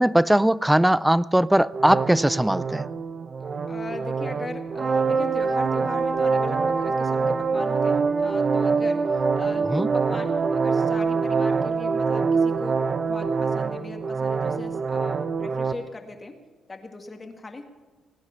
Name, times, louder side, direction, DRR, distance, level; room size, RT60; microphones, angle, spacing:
voice 1, 0.0-2.9 9.7-9.9, right 1 dB, 5° right, 0.3 m, -20 dB
sound 1, 1.7-15.7, right 5 dB, 40° right, 0.8 m, -24 dB
voice 2, 3.7-16.4 16.7-17.7, left 3 dB, 30° left, 1.9 m, -39 dB
20.0 x 9.7 x 5.8 m
cardioid pair, 90°, 0 cm